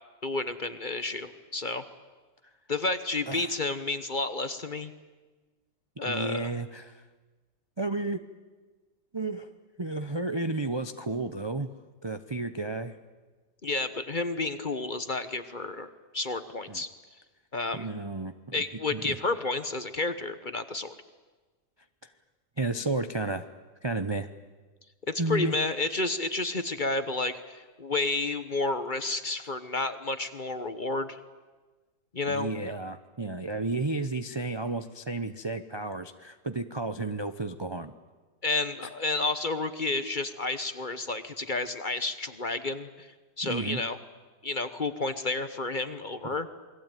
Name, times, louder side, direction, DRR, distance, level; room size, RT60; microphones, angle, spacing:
voice 1, 0.2-1.8 2.7-4.9 6.0-6.5 13.6-16.9 17.5-17.9 18.5-20.9 25.1-31.2 32.1-32.5 38.4-43.1 43.4-44.0 44.4-46.5, left 3 dB, 35° left, 10 dB, 1.0 m, -31 dB
voice 2, 6.0-7.0 7.8-8.2 9.1-9.5 9.8-11.7 12.0-13.0 16.7-16.8 17.7-18.3 18.9-19.2 22.6-23.5 23.8-24.3 25.2-25.5 32.3-37.9 38.8-38.9 43.4-43.8, right 2 dB, 30° right, 9 dB, 0.4 m, -32 dB
28.0 x 21.0 x 9.1 m, 1.3 s
omnidirectional pair, 1.9 m